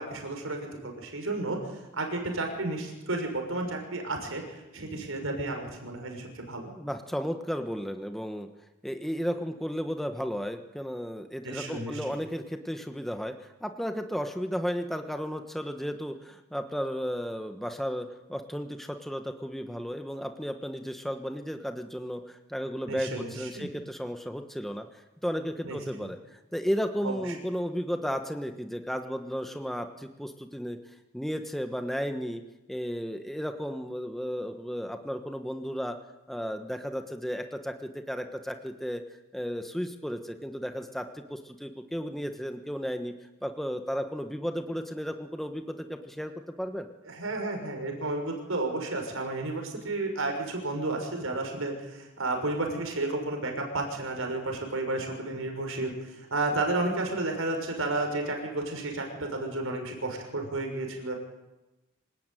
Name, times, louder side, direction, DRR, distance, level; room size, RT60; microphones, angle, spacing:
voice 1, 0.0-6.7 11.4-12.0 22.9-23.7 25.6-25.8 27.0-27.1 47.0-61.1, right 2 dB, 70° right, 3 dB, 6.0 m, -32 dB
voice 2, 6.8-8.5 8.8-30.8 31.1-32.4 32.7-36.0 36.3-39.0 39.3-43.1 43.4-46.3 46.6-46.9, equal, ahead, 6 dB, 1.3 m, -34 dB
26.5 x 18.5 x 9.2 m, 0.99 s
head